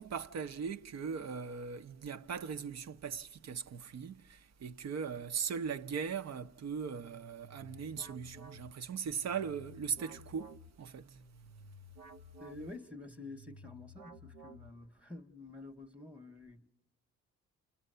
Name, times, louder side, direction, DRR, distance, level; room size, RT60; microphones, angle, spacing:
voice 1, 0.0-11.2, right 6 dB, 55° right, 0.9 m, -39 dB
sound 1, 7.0-15.1, equal, 80° right, 1.1 m, -54 dB
voice 2, 12.4-16.7, left 2 dB, 5° right, 1.2 m, -49 dB
29.0 x 29.0 x 6.8 m
cardioid pair, 80°, 31 cm